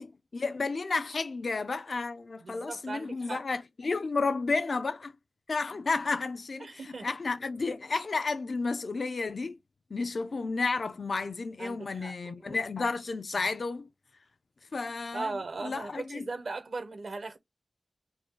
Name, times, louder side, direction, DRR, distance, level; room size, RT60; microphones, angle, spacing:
voice 1, 0.0-5.1 5.5-9.6 9.9-13.9 14.7-15.3 15.6-16.3, left 4 dB, 55° left, 0.5 m, -32 dB
voice 2, 2.4-3.4 6.6-7.1 11.6-12.6 15.1-17.4, right 3 dB, 70° right, 1.0 m, -38 dB
4.4 x 2.3 x 4.5 m
wide cardioid pair, 110°, 0 cm